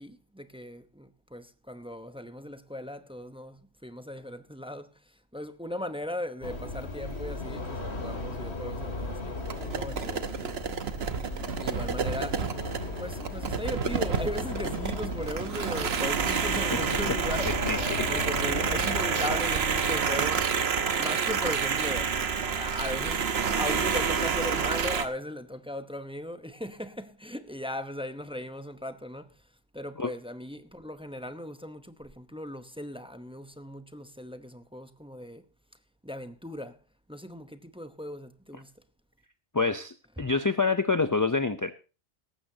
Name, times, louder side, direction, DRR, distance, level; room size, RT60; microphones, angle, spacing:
voice 1, 0.0-4.9 5.3-10.5 11.6-12.5 13.0-17.7 18.1-20.6 21.0-22.1 22.6-23.3 23.6-29.3 29.7-35.4 36.0-36.8 37.1-38.7, left 1 dB, 5° right, 0.8 m, -38 dB
sound 1, 6.4-19.4, left 2 dB, 85° left, 2.8 m, -36 dB
sound 2, 9.5-25.1, right 6 dB, 75° right, 1.3 m, -29 dB
voice 2, 17.7-18.1 30.0-30.1 39.5-41.7, left 4 dB, 25° left, 0.5 m, -27 dB
17.5 x 14.5 x 2.8 m
omnidirectional pair, 1.1 m